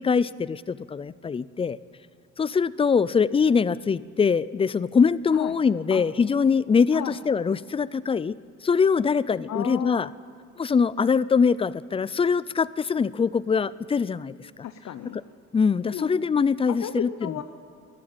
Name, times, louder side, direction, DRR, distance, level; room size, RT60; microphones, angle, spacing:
voice 1, 0.0-1.8 2.4-8.4 8.6-10.1 10.6-14.3 15.5-17.3, left 5 dB, 20° left, 19 dB, 0.3 m, -23 dB
voice 2, 9.5-10.1 14.6-15.2 15.9-16.1 16.7-17.4, left 10 dB, 65° left, 10 dB, 0.7 m, -33 dB
13.5 x 11.5 x 8.8 m, 2.4 s
cardioid pair, 90°, 30 cm